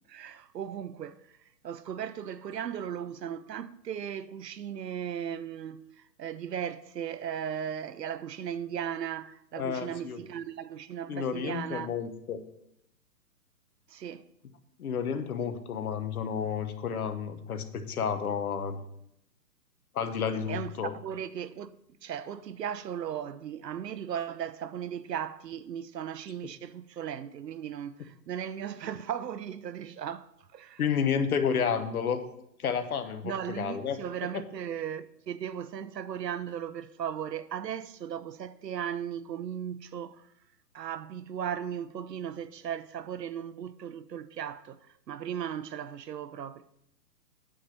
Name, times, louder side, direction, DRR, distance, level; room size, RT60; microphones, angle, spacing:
voice 1, 0.1-1.2 1.6-11.9 13.9-14.3 20.5-30.8 33.2-40.3 40.7-46.6, right 9 dB, 75° right, 0.7 m, -37 dB
voice 2, 9.5-10.2 11.1-12.4 14.8-18.8 19.9-20.9 30.8-32.2 32.6-34.0, left 7 dB, 60° left, 1.1 m, -31 dB
9.1 x 4.4 x 6.5 m
hypercardioid pair, 140°, 50 cm